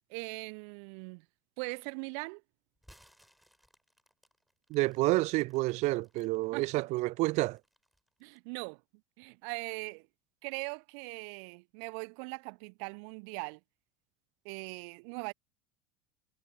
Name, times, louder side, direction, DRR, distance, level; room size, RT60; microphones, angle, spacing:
voice 1, 0.1-1.2 1.6-2.4 6.5-6.9 8.2-8.8 9.2-10.1 10.4-13.6 14.4-15.3, right 38 dB, 55° right, 1.1 m, -40 dB
sound 1, 2.8-6.7 7.2-8.5, equal, ahead, 7.8 m, -63 dB
voice 2, 4.7-7.6, right 21 dB, 40° right, 0.4 m, -29 dB
figure-of-eight pair, 70°, 18 cm